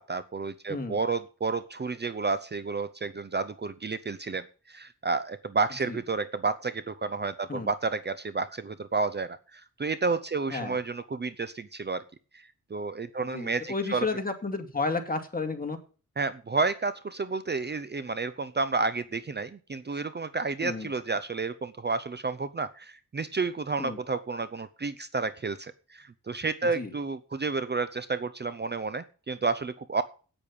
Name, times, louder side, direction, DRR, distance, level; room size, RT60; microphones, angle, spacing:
voice 1, 0.0-12.0 12.3-14.1 16.2-30.0, right 4 dB, 30° right, 14 dB, 0.7 m, -31 dB
voice 2, 0.7-1.0 5.9-6.0 7.5-7.7 10.5-10.8 13.2-15.8 20.6-20.9 23.8-24.0 26.7-26.9, left 3 dB, 25° left, 4 dB, 2.4 m, -32 dB
9.0 x 8.5 x 8.6 m, 0.39 s
cardioid pair, 80°, 33 cm